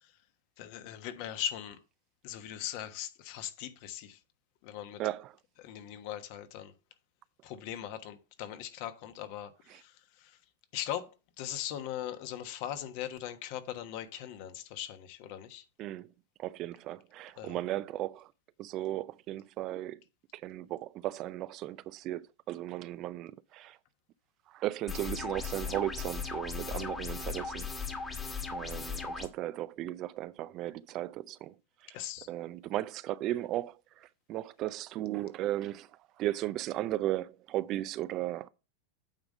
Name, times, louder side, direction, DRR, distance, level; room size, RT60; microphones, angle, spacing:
voice 1, 0.6-1.8 2.2-4.2 4.6-5.0 5.6-6.7 7.4-9.5 10.7-11.1 11.4-15.6 17.4-17.6 26.7-26.9 31.9-32.3, left 11 dB, 55° left, 1.2 m, -39 dB
voice 2, 5.0-5.4 9.7-9.8 15.8-16.1 16.4-18.3 18.6-20.0 20.3-23.8 24.5-27.7 28.5-31.5 31.8-32.0 32.3-35.9 36.2-38.5, right 14 dB, 45° right, 0.4 m, -36 dB
sound 1, 24.9-29.3, left 5 dB, 15° left, 1.4 m, -37 dB
8.9 x 3.6 x 6.5 m
hypercardioid pair, 110°, 0 cm